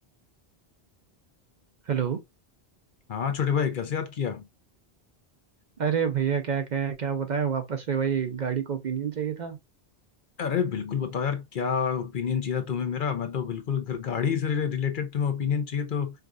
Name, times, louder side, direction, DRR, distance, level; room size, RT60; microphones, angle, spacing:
voice 1, 1.9-2.2 5.8-9.6, right 7 dB, 55° right, 0.6 m, -28 dB
voice 2, 3.1-4.5 10.4-16.1, left 7 dB, 60° left, 0.8 m, -28 dB
4.7 x 2.4 x 2.4 m
omnidirectional pair, 1.0 m